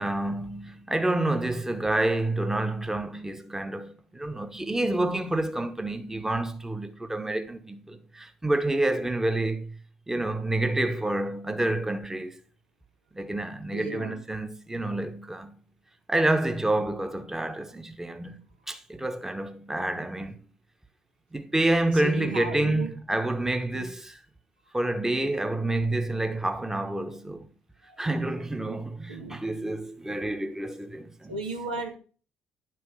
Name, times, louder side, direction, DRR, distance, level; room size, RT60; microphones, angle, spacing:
voice 1, 0.0-9.7 10.1-12.4 13.1-15.6 16.1-18.4 18.7-20.4 21.3-24.2 24.7-27.5 28.0-31.4, right 2 dB, 10° right, 1.2 m, -28 dB
voice 2, 13.7-14.2 22.0-22.9 23.7-23.9 28.7-28.8 29.1-29.4 31.3-31.9, right 3 dB, 80° right, 1.3 m, -35 dB
9.8 x 6.1 x 4.8 m
figure-of-eight pair, 45°, 4 cm